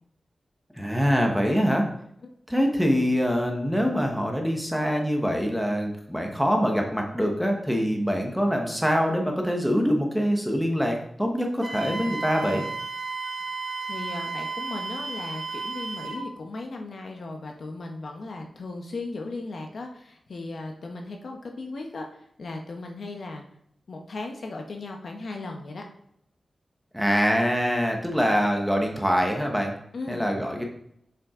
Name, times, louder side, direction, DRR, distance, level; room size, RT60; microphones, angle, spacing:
voice 1, 0.8-1.9 2.5-12.6 26.9-29.7 30.1-30.6, equal, ahead, 1 dB, 1.2 m, -24 dB
Wind instrument woodwind instrument, 11.6-16.3, right 4 dB, 40° right, 1.0 m, -33 dB
voice 2, 13.9-22.1 22.4-23.4 23.9-25.8 29.9-30.2, left 3 dB, 65° left, 2 dB, 1.1 m, -36 dB
7.4 x 5.8 x 3.8 m, 0.72 s
wide cardioid pair, 135°, 0 cm